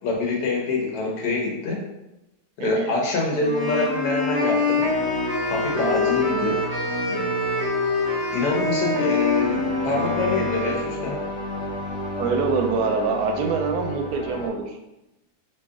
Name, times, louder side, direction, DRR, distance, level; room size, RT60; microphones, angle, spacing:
voice 1, 0.0-1.8 2.6-4.8 5.5-6.6 7.1-7.2 8.3-11.2, left 3 dB, 80° left, -1 dB, 1.4 m, -25 dB
voice 2, 2.6-3.0 5.8-6.2 12.2-14.8, right 4 dB, 75° right, 4 dB, 1.1 m, -25 dB
sound 1, 3.4-10.9, left 3 dB, 25° left, 0.5 m, -25 dB
sound 2, 4.8-14.5, equal, 55° left, 0.8 m, -32 dB
3.1 x 2.7 x 3.5 m, 0.93 s
omnidirectional pair, 1.7 m